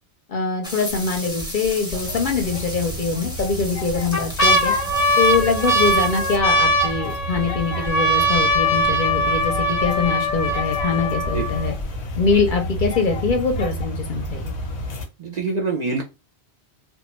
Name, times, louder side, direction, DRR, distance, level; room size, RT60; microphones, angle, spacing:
voice 1, 0.3-4.7 5.2-11.7 12.2-14.5, left 4 dB, 55° left, 4 dB, 0.7 m, -23 dB
sound 1, 0.6-6.4, equal, 5° right, 0.6 m, -35 dB
sound 2, 0.9-1.4 1.9-2.0 2.9-3.4 3.9-11.8 12.5-12.6 12.8-13.3 13.8-13.9, equal, 30° left, 0.3 m, -21 dB
sound 3, 1.9-15.0, equal, 90° left, 1.1 m, -31 dB
voice 2, 15.2-16.0, right 4 dB, 55° right, 0 dB, 0.5 m, -25 dB
2.2 x 2.2 x 3.0 m, 0.28 s
omnidirectional pair, 1.1 m